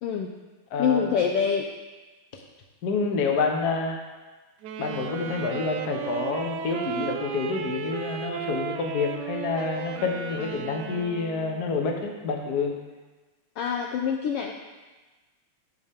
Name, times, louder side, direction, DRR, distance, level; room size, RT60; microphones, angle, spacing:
voice 1, 0.0-0.3 0.8-1.7 13.6-14.5, left 7 dB, 90° left, 2 dB, 1.3 m, -25 dB
voice 2, 2.8-4.0 4.8-12.7, left 4 dB, 65° left, 2 dB, 0.9 m, -28 dB
Wind instrument woodwind instrument, 4.6-11.8, right 8 dB, 85° right, 2.1 m, -35 dB
9.9 x 9.2 x 3.6 m, 1.2 s
omnidirectional pair, 3.3 m